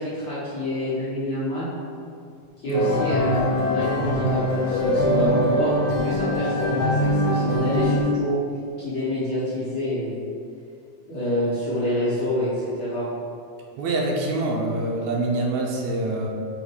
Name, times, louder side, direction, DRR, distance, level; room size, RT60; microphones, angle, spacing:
voice 1, 0.0-1.7 2.6-3.4 3.7-8.4 8.8-10.2 11.1-13.0, equal, 50° left, -11 dB, 1.7 m, -26 dB
sound 1, 2.7-8.0, left 1 dB, 75° left, 2.1 m, -23 dB
voice 2, 2.7-3.0 13.8-16.3, right 2 dB, 75° right, -1 dB, 2.0 m, -25 dB
5.6 x 3.6 x 4.8 m, 2.3 s
omnidirectional pair, 3.6 m